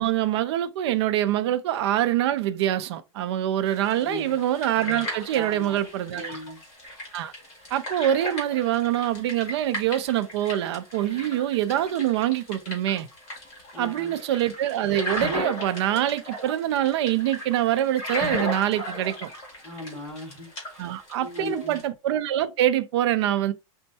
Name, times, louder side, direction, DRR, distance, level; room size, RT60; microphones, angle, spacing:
voice 1, 0.0-6.4 7.1-7.3 7.7-13.1 13.8-19.3 20.8-23.5, right 12 dB, 50° right, 0.5 m, -25 dB
sound 1, 3.6-21.8, equal, 30° left, 2.0 m, -36 dB
voice 2, 4.0-4.4 5.3-5.8 6.1-6.6 13.7-14.2 19.6-20.9 21.2-21.8, left 1 dB, 5° left, 1.5 m, -38 dB
5.3 x 2.2 x 2.7 m
supercardioid pair, 165°, 18 cm